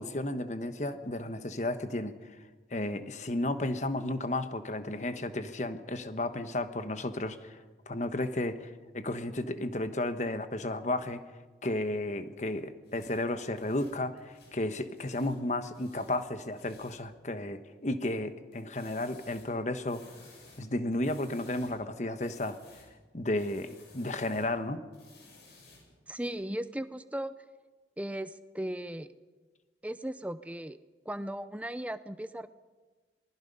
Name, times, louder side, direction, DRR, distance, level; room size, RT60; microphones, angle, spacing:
voice 1, 0.0-2.1 2.7-7.6 7.9-11.2 11.6-20.0 20.6-22.6 23.1-24.9, left 1 dB, 40° left, 9 dB, 1.2 m, -33 dB
sound 1, 12.8-15.4 15.6-17.1 18.5-20.7 20.9-21.8 22.1-23.0 23.3-24.5 24.9-26.3, left 3 dB, 65° left, 7.8 m, -57 dB
voice 2, 26.1-27.3 28.0-29.1 29.8-30.8 31.1-32.5, right 1 dB, 10° right, 12 dB, 0.6 m, -37 dB
26.5 x 20.0 x 5.4 m, 1.3 s
head